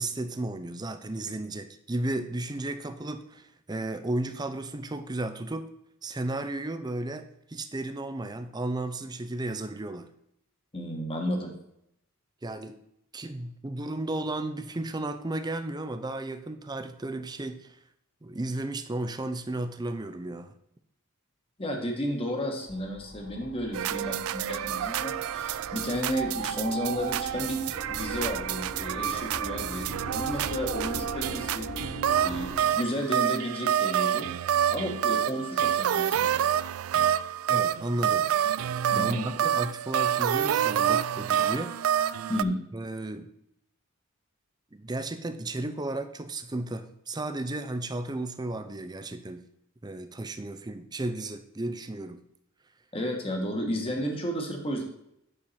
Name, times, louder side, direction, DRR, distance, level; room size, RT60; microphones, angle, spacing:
voice 1, 0.0-5.7 6.0-10.1 12.4-12.8 13.1-17.8 18.2-20.5 37.5-38.3 39.0-41.8 42.7-43.3 44.7-49.5 49.8-52.2, right 2 dB, 20° right, 9 dB, 0.5 m, -34 dB
voice 2, 10.7-11.5 21.6-34.3 34.7-36.4 38.9-39.3 42.3-42.6 52.9-54.8, equal, 25° left, 2 dB, 1.5 m, -33 dB
sound 1, 22.7-32.5, left 1 dB, 75° left, 3.3 m, -41 dB
sound 2, 23.7-42.4, right 10 dB, 70° right, 0.3 m, -28 dB
8.7 x 6.5 x 4.2 m, 0.77 s
head